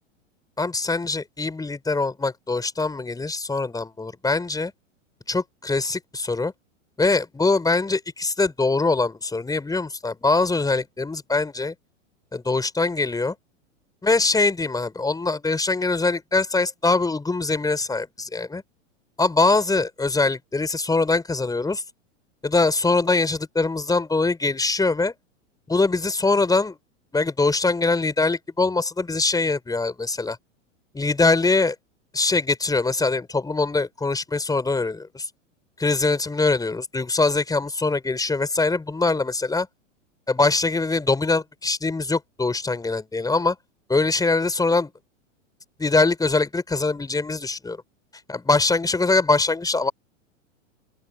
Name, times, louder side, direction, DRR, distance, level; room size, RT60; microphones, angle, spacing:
voice 1, 0.6-4.7 5.3-6.5 7.0-11.7 12.3-13.3 14.0-18.6 19.2-21.8 22.4-25.1 25.7-26.8 27.1-30.4 30.9-31.7 32.1-35.3 35.8-39.7 40.3-43.6 43.9-44.9 45.8-47.8 48.3-49.9, left 3 dB, 10° left, 4.8 m, -23 dB
open air
hypercardioid pair, 105°, 39 cm